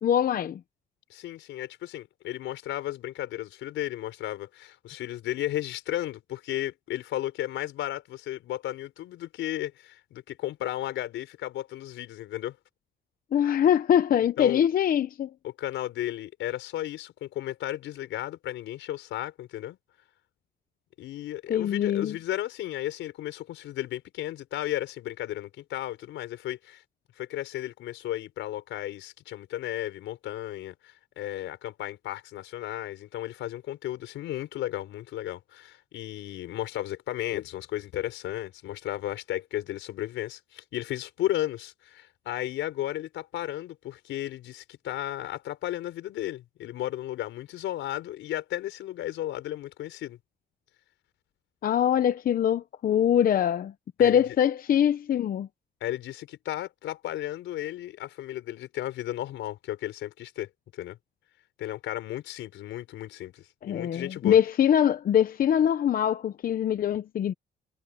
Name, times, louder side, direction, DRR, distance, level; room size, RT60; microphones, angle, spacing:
voice 1, 0.0-0.6 13.3-15.3 21.5-22.1 51.6-53.7 54.0-55.5 63.6-67.3, left 9 dB, 50° left, 0.8 m, -23 dB
voice 2, 1.1-12.6 14.4-14.6 15.4-19.8 21.0-26.8 27.2-50.2 54.0-54.2 55.8-61.0 61.6-64.4, left 13 dB, 85° left, 4.7 m, -34 dB
cardioid pair, 125°, 19 cm